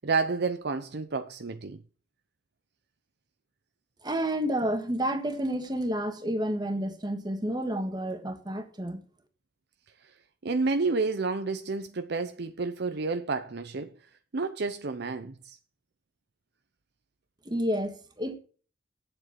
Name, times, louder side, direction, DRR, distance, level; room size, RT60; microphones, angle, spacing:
voice 1, 0.0-1.8 10.4-14.0 14.3-15.6, right 4 dB, 55° right, 0.6 m, -30 dB
voice 2, 4.0-9.0 17.4-18.3, equal, 20° right, 1.5 m, -30 dB
8.9 x 7.8 x 5.8 m
head